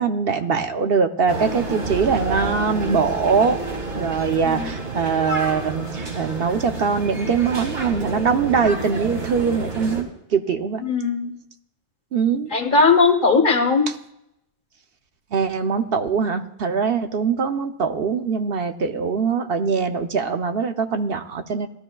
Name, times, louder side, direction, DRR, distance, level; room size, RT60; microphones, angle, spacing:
voice 1, 0.0-3.6 3.9-10.8 12.1-12.5 15.3-21.7, right 5 dB, 60° right, 6 dB, 0.9 m, -22 dB
sound 1, 1.3-10.0, right 2 dB, 90° right, 2.3 m, -29 dB
voice 2, 10.8-11.3 12.5-13.8, left 4 dB, 50° left, 6 dB, 1.3 m, -18 dB
18.0 x 12.5 x 2.3 m, 0.80 s
omnidirectional pair, 1.1 m